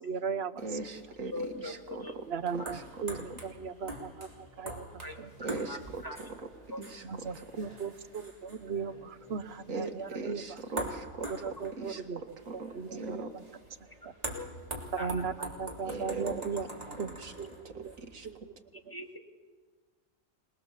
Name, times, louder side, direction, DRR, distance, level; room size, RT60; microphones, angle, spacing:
voice 1, 0.0-0.6 2.3-5.6 7.0-10.9 11.3-13.4 14.0-14.1 14.9-16.7 17.0-17.1 17.4-18.0 18.2-18.4 18.7-18.9, right 5 dB, 55° right, 11 dB, 1.1 m, -37 dB
sound 1, 0.6-18.3, right 1 dB, 30° right, 3.6 m, -45 dB
voice 2, 0.6-2.3 2.5-2.8 3.3-3.4 5.4-6.5 6.8-7.3 9.7-11.3 11.8-12.0 12.5-13.3 15.9-16.5 16.8-17.3 17.7-18.3, right 3 dB, 75° right, 5 dB, 2.1 m, -40 dB
voice 3, 1.3-1.7 2.0-2.2 2.6-2.7 5.0-5.2 5.7-6.2 6.7-6.8 14.3-14.5 15.0-15.1 18.9-19.2, left 2 dB, 15° left, 3 dB, 2.1 m, -40 dB
26.0 x 20.5 x 7.3 m, 1.4 s
omnidirectional pair, 1.4 m